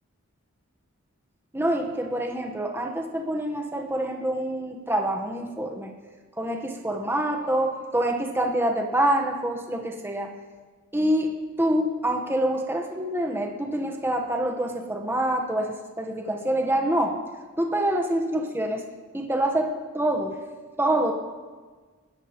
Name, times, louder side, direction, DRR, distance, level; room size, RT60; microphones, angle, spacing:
voice 1, 1.5-5.9 6.4-10.3 10.9-11.3 11.6-17.2 17.6-18.8 19.1-20.4 20.8-21.1, right 1 dB, 10° right, 2 dB, 1.0 m, -26 dB
20.0 x 14.0 x 3.0 m, 1.4 s
head